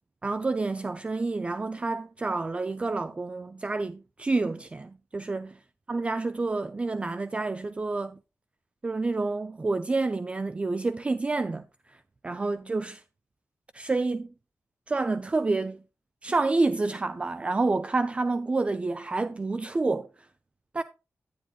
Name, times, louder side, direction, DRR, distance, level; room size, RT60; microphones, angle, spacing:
voice 1, 0.2-5.6 5.9-8.2 8.8-12.0 12.2-13.0 13.7-14.3 14.9-15.8 16.2-20.1 20.7-20.8, right 3 dB, 25° right, 0.3 m, -28 dB
10.0 x 10.0 x 2.4 m
wide cardioid pair, 165°, 5 cm